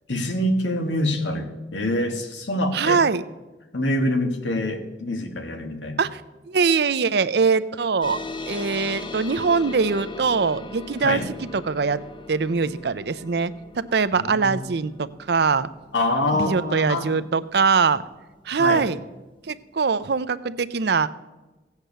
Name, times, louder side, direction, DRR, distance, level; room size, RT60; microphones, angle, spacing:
voice 1, 0.1-3.0 3.7-6.0 11.0-11.3 14.2-14.7 15.9-17.2 18.6-18.9, left 1 dB, 90° left, 5 dB, 1.8 m, -25 dB
voice 2, 2.7-3.2 6.0-6.2 6.5-8.2 8.5-11.2 11.5-12.0 12.3-15.7 16.3-18.0 18.5-19.0 19.5-21.1, right 5 dB, 60° right, 14 dB, 0.6 m, -22 dB
sound 1, 8.0-18.9, left 2 dB, 30° left, 0.7 m, -39 dB
16.5 x 8.2 x 6.7 m, 1.1 s
head